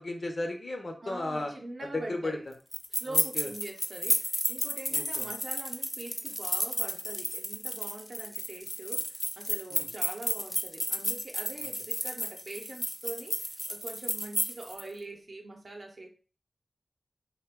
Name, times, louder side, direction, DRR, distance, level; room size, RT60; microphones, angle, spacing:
voice 1, 0.0-1.5 1.8-2.4 3.1-3.5 4.9-5.3 9.7-9.9, left 2 dB, 60° left, 4 dB, 0.6 m, -35 dB
voice 2, 1.0-2.4 2.9-16.1, right 2 dB, 70° right, 1 dB, 0.6 m, -43 dB
sound 1, 2.7-14.8, left 1 dB, 15° left, 0.3 m, -32 dB
2.5 x 2.1 x 3.5 m, 0.37 s
cardioid pair, 45°, 0 cm